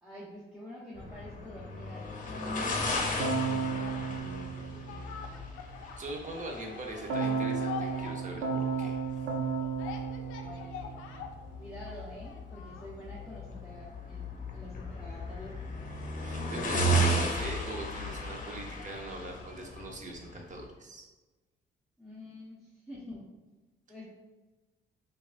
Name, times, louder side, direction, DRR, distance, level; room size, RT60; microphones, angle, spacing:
voice 1, 0.0-2.1 2.4-5.4 10.3-11.3 11.6-14.2 14.5-16.0 22.0-23.3 23.9-24.0, left 1 dB, 5° right, -8 dB, 0.8 m, -47 dB
sound 1, 0.9-20.7, right 1 dB, 40° left, 0.7 m, -35 dB
Keyboard (musical), 3.2-5.5 7.1-11.4, right 5 dB, 85° right, 0.6 m, -34 dB
sound 2, 4.7-19.9 20.2-20.3, left 6 dB, 85° left, 0.4 m, -46 dB
voice 2, 6.0-9.0 16.2-21.1, right 2 dB, 40° right, 1 dB, 0.8 m, -41 dB
4.7 x 2.4 x 2.4 m, 1.2 s
cardioid pair, 90°, 20 cm